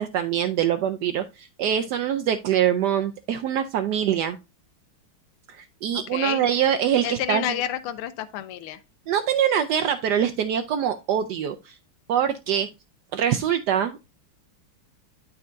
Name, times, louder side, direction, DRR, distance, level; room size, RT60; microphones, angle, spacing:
voice 1, 0.0-4.4 5.5-7.6 9.1-11.7 12.1-12.7 13.1-14.0, right 9 dB, 80° right, 0.9 m, -24 dB
voice 2, 5.9-6.5 7.0-8.8, left 11 dB, 90° left, 1.6 m, -30 dB
12.0 x 4.5 x 2.5 m
omnidirectional pair, 2.4 m